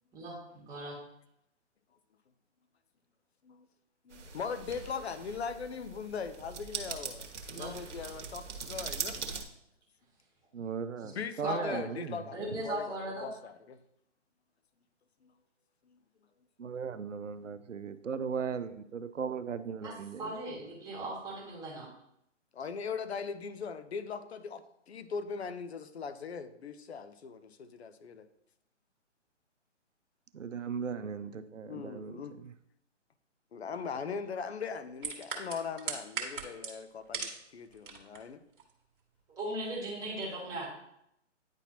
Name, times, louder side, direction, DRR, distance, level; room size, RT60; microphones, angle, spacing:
voice 1, 0.1-1.0 7.5-7.7 11.4-11.8 12.3-13.3 19.8-19.9 20.2-21.9 39.3-40.7, right 1 dB, 10° right, 1.4 m, -38 dB
voice 2, 4.0-7.3 7.6-9.2 11.0-13.8 15.2-15.3 15.9-16.0 22.5-28.3 31.7-32.4 33.5-38.4, left 6 dB, 60° left, 0.7 m, -40 dB
sound 1, 4.1-9.4, right 5 dB, 70° right, 1.3 m, -41 dB
voice 3, 10.5-12.2 16.6-20.4 30.3-32.2, right 6 dB, 85° right, 0.7 m, -37 dB
sound 2, 35.0-37.5 37.7-38.2 38.6-38.7, right 6 dB, 45° right, 1.5 m, -37 dB
9.7 x 4.2 x 2.8 m
figure-of-eight pair, 140°, 37 cm